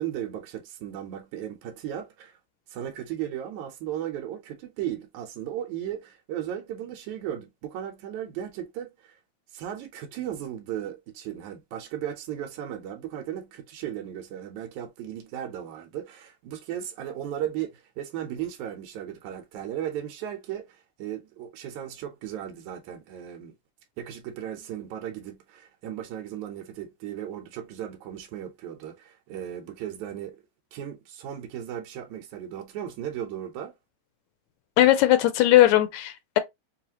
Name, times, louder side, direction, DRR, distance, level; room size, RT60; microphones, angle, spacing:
voice 1, 0.0-2.4 2.7-9.2 9.5-23.5 24.0-30.4 30.7-33.7, right 10 dB, 85° right, 2.2 m, -36 dB
voice 2, 34.8-36.4, left 14 dB, 80° left, 1.8 m, -19 dB
5.4 x 2.4 x 2.8 m
omnidirectional pair, 3.4 m